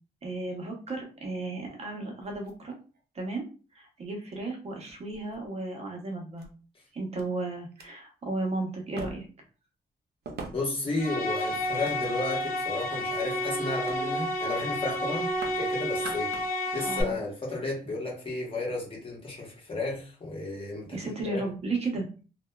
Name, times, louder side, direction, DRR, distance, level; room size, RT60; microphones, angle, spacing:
voice 1, 0.2-2.8 3.1-3.5 3.7-6.5 6.9-9.3 16.8-17.2 20.9-22.2, right 2 dB, 40° right, 0.7 m, -34 dB
sound 1, 2.2-3.3 4.1-4.2 4.9-5.5 6.4-6.5 7.2-7.3 7.7-7.9 9.0-9.5 10.2-10.8 11.5-12.4 12.9-13.3 13.9-14.0 14.3-14.5 14.8-15.7 15.9-16.6 16.9-17.0, right 3 dB, 75° right, 0.5 m, -44 dB
voice 2, 10.5-16.3 16.7-21.0 21.3-21.4, left 3 dB, 30° left, 0.9 m, -33 dB
sound 2, 11.0-17.0, left 1 dB, 55° left, 0.5 m, -30 dB
2.7 x 2.1 x 2.2 m
wide cardioid pair, 160°, 17 cm